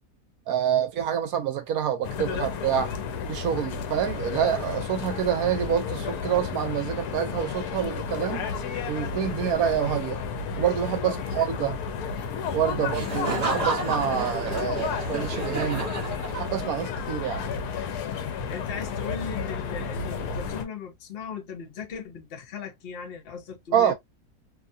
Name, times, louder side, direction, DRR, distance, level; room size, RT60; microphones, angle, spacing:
voice 1, 0.5-2.9 3.3-8.5 8.9-10.2 10.6-11.8 12.5-15.8 16.3-17.4 23.7-23.9, right 9 dB, 75° right, 1.0 m, -27 dB
sound 1, 2.0-20.6, left 6 dB, 70° left, 1.1 m, -32 dB
voice 2, 11.0-11.5 12.7-12.9 18.5-23.9, left 6 dB, 50° left, 0.8 m, -38 dB
Laughter, 12.9-16.8, right 3 dB, 30° right, 0.9 m, -31 dB
2.8 x 2.3 x 2.6 m
omnidirectional pair, 1.7 m